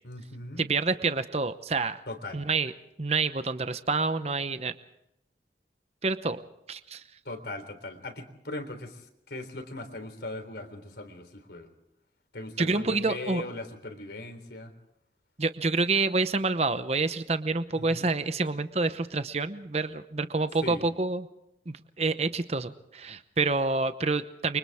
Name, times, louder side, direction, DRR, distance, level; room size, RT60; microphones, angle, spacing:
voice 1, 0.0-0.7 2.1-2.4 7.3-11.7 12.3-14.7 17.7-18.1 20.6-20.9, left 2 dB, 70° left, 6 dB, 3.6 m, -39 dB
voice 2, 0.6-2.0 2.3-2.7 3.0-4.7 6.0-6.4 6.7-7.0 12.6-13.4 15.4-21.3 21.7-24.6, right 3 dB, 35° right, 11 dB, 0.9 m, -28 dB
29.5 x 25.0 x 3.6 m, 0.83 s
head